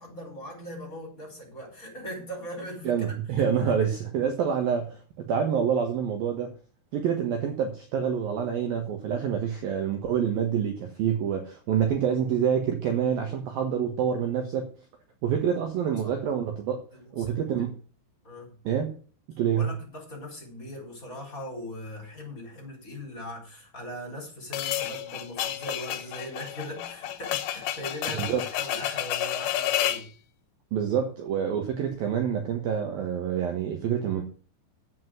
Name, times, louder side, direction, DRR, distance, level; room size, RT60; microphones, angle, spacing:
voice 1, 0.0-3.1 3.4-3.9 15.8-16.1 17.0-17.6 18.2-18.5 19.6-30.1, equal, 20° left, 0 dB, 5.1 m, -40 dB
voice 2, 2.9-6.5 6.9-14.7 15.2-16.8 17.1-17.8 18.6-19.0 19.4-19.8 28.1-28.4 30.7-34.2, right 8 dB, 65° right, 4 dB, 2.6 m, -27 dB
sound 1, 24.5-30.1, left 12 dB, 75° left, 3.2 m, -30 dB
8.6 x 7.8 x 7.9 m, 0.41 s
omnidirectional pair, 5.3 m